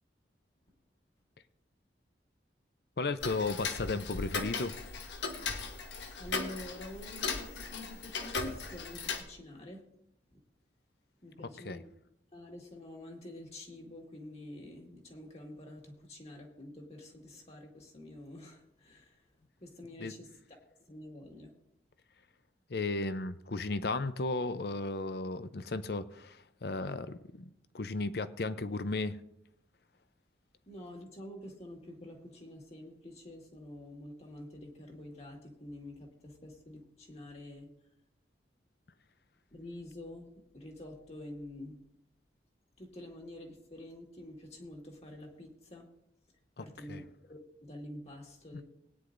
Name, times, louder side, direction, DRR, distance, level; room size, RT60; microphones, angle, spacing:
voice 1, 3.0-4.8 11.6-11.8 20.0-20.1 22.7-27.5 27.7-29.2 46.6-47.0, left 3 dB, 60° left, 13 dB, 0.6 m, -35 dB
Tick-tock, 3.2-9.2, left 4 dB, 80° left, 1.2 m, -37 dB
voice 2, 6.2-9.8 11.2-11.8 12.3-19.2 19.6-20.6 20.9-21.5 30.7-37.7 39.5-41.8 42.8-45.9 46.6-48.6, left 1 dB, 35° left, 1 dB, 1.9 m, -48 dB
20.0 x 9.6 x 2.6 m, 0.78 s
head